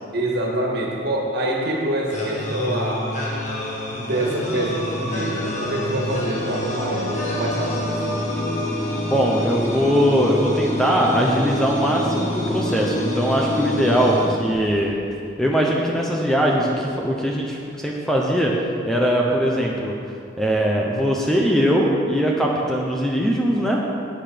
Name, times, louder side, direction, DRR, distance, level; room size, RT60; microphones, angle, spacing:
voice 1, 0.1-3.1 3.9-8.3, right 1 dB, 55° right, -1 dB, 2.0 m, -26 dB
sound 1, 2.1-15.0, left 1 dB, 35° left, 1.7 m, -27 dB
voice 2, 9.1-15.0 15.4-18.5 18.9-19.9 20.4-23.8, equal, ahead, -2 dB, 0.8 m, -21 dB
12.0 x 8.9 x 5.2 m, 2.4 s
head